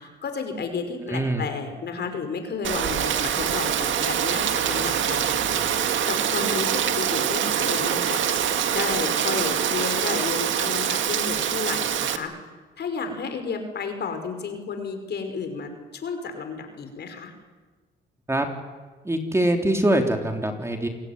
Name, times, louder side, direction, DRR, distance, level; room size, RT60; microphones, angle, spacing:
voice 1, 0.0-12.3 12.8-17.3, left 5 dB, 55° left, 6 dB, 5.4 m, -32 dB
voice 2, 1.1-1.5 18.3-18.5 19.0-20.9, right 1 dB, 15° right, 4 dB, 3.5 m, -23 dB
Rain, 2.6-12.2, right 9 dB, 70° right, 2.1 m, -24 dB
28.0 x 21.0 x 9.6 m, 1.4 s
cardioid pair, 90°, 20 cm